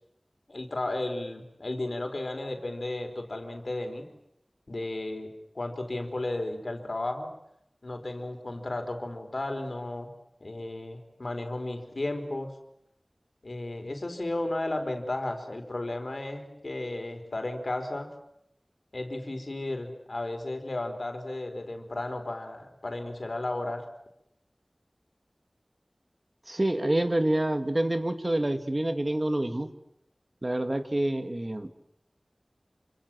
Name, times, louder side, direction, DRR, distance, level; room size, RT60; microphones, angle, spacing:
voice 1, 0.5-4.1 4.7-7.3 7.8-10.1 10.4-12.5 13.4-18.1 18.9-23.8, left 2 dB, 75° left, 5 dB, 4.5 m, -34 dB
voice 2, 26.5-29.7 30.4-31.7, right 1 dB, 40° right, 8 dB, 2.2 m, -27 dB
27.5 x 27.0 x 7.7 m, 0.75 s
wide cardioid pair, 50°, 0 cm